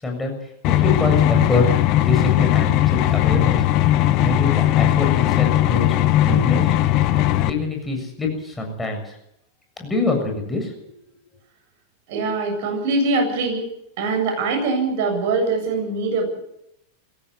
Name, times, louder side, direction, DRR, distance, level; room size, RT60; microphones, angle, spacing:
voice 1, 0.0-1.7 2.0-3.7 4.0-6.7 7.4-9.2 9.8-10.7, left 2 dB, 10° left, 2 dB, 7.1 m, -25 dB
sound 1, 0.6-7.5, left 14 dB, 40° left, 1.1 m, -18 dB
voice 2, 12.1-13.7 14.0-16.4, right 3 dB, 50° right, 4 dB, 7.9 m, -23 dB
23.0 x 16.5 x 8.0 m, 0.78 s
figure-of-eight pair, 90°, 0 cm